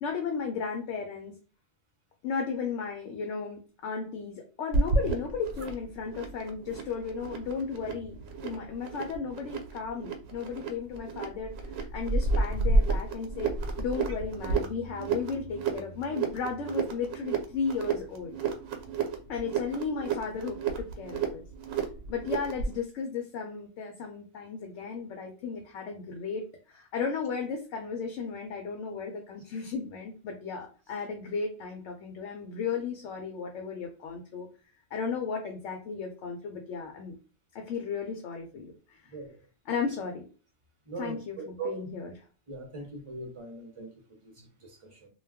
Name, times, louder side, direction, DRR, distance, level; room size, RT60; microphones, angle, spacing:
voice 1, 0.0-1.3 2.2-13.5 13.8-18.4 19.3-21.4 22.1-34.5 34.9-37.2 37.5-39.0 39.7-40.3 41.0-42.1, left 5 dB, 75° left, 0.9 m, -35 dB
sound 1, 4.7-22.8, right 3 dB, 90° right, 1.0 m, -31 dB
voice 2, 40.9-41.8 42.5-45.1, right 3 dB, 35° right, 0.5 m, -41 dB
2.3 x 2.2 x 3.4 m
omnidirectional pair, 1.3 m